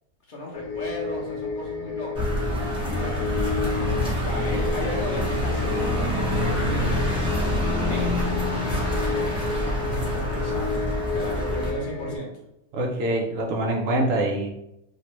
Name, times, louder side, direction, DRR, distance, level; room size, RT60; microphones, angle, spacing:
voice 1, 0.3-2.3 2.8-4.0 4.2-6.1 6.4-7.0 7.6-8.4 9.4-10.7 11.1-12.3, left 1 dB, 50° left, -3 dB, 0.6 m, -35 dB
sound 1, 0.5-12.2, left 4 dB, 70° left, 1.0 m, -31 dB
sound 2, 2.1-11.7, left 1 dB, 5° right, 0.5 m, -26 dB
sound 3, 2.8-8.4, left 1 dB, 85° left, 1.3 m, -37 dB
voice 2, 12.7-14.5, right 1 dB, 65° right, 0 dB, 0.8 m, -24 dB
3.1 x 2.5 x 2.9 m, 0.84 s
omnidirectional pair, 1.7 m